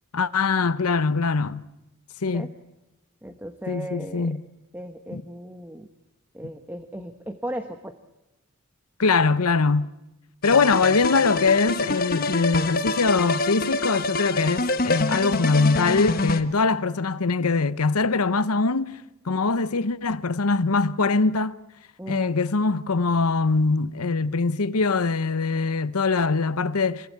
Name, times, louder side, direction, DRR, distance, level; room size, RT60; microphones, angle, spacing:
voice 1, 0.1-1.7 2.2-2.5 3.7-4.4 5.1-5.2 9.0-10.0 10.4-19.0 19.2-21.6 22.1-27.1, left 4 dB, 90° left, 0.9 m, -22 dB
voice 2, 3.2-4.4 4.7-5.9 6.3-8.0 22.0-22.3, right 1 dB, 10° right, 1.1 m, -36 dB
sound 1, 10.4-16.4, left 3 dB, 40° left, 1.3 m, -26 dB
26.5 x 22.5 x 8.6 m
head